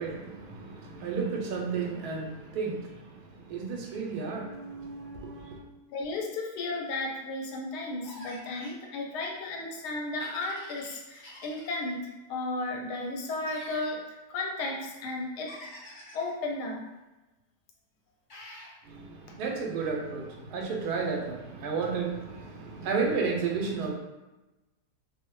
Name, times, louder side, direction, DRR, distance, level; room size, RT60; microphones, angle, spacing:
voice 1, 0.0-5.6 18.8-23.9, right 4 dB, 80° right, 1 dB, 1.1 m, -33 dB
voice 2, 5.9-12.0 12.3-14.0 14.3-15.5 16.1-16.8, left 2 dB, 85° left, 0 dB, 1.1 m, -34 dB
sound 1, 8.0-8.8 10.2-11.9 13.4-13.9 15.5-16.3 18.3-18.7, left 1 dB, 45° left, 0.7 m, -47 dB
2.7 x 2.0 x 3.0 m, 1.1 s
omnidirectional pair, 1.7 m